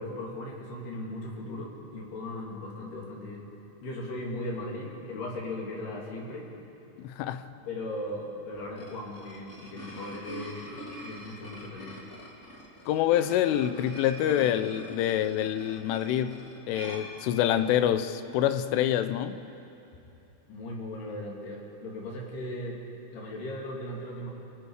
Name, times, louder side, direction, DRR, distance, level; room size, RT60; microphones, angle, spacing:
voice 1, 0.0-3.5 3.8-6.5 7.7-12.0 20.5-22.8 23.1-24.3, left 1 dB, 55° left, 4.6 m, -37 dB
voice 2, 7.0-7.4 12.9-19.4, left 11 dB, 80° left, 3.1 m, -26 dB
sound 1, 8.5-17.9, equal, 20° left, 2.1 m, -45 dB
27.5 x 23.0 x 4.9 m
omnidirectional pair, 6.0 m